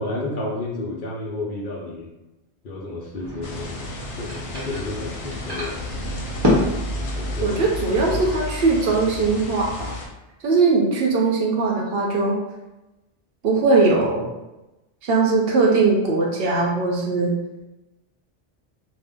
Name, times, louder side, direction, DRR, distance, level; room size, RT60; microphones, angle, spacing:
voice 1, 0.0-2.1 2.6-5.8 7.0-7.6 8.1-8.4, left 2 dB, 55° left, -4 dB, 0.7 m, -31 dB
sound 1, 3.1-8.2, left 1 dB, 25° right, 0.6 m, -28 dB
sound 2, 3.4-10.1, left 1 dB, 90° left, 0.9 m, -32 dB
voice 2, 7.4-10.0 10.4-12.4 13.4-14.3 15.0-17.3, right 3 dB, 65° right, -2 dB, 0.7 m, -20 dB
2.6 x 2.1 x 3.5 m, 1.0 s
omnidirectional pair, 1.2 m